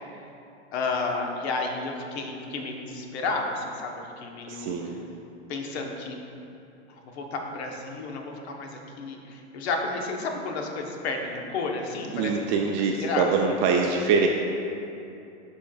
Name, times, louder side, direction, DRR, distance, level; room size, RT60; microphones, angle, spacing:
voice 1, 0.7-5.0 5.5-6.2 6.9-12.6 12.9-13.6, left 3 dB, 70° left, 2 dB, 1.1 m, -32 dB
voice 2, 4.5-5.0 12.1-14.3, right 5 dB, 40° right, 1 dB, 0.5 m, -24 dB
11.5 x 4.4 x 2.3 m, 2.7 s
hypercardioid pair, 115°, 34 cm